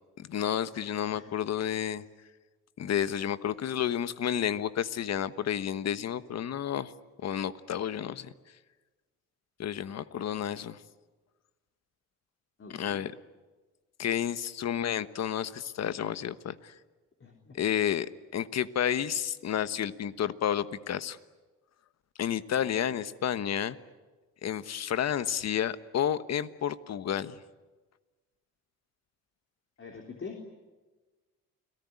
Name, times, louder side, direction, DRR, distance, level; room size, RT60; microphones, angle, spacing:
voice 1, 0.2-2.0 2.8-6.9 7.2-8.3 9.6-10.8 12.8-13.1 14.0-16.7 17.5-18.1 18.3-21.2 22.2-23.8 24.4-27.3, left 9 dB, 60° left, 14 dB, 1.2 m, -31 dB
voice 2, 12.6-13.0 17.2-17.6 22.6-22.7 29.8-30.4, left 5 dB, 45° left, 2 dB, 3.7 m, -44 dB
29.5 x 18.5 x 9.7 m, 1.3 s
cardioid pair, 90°, 30 cm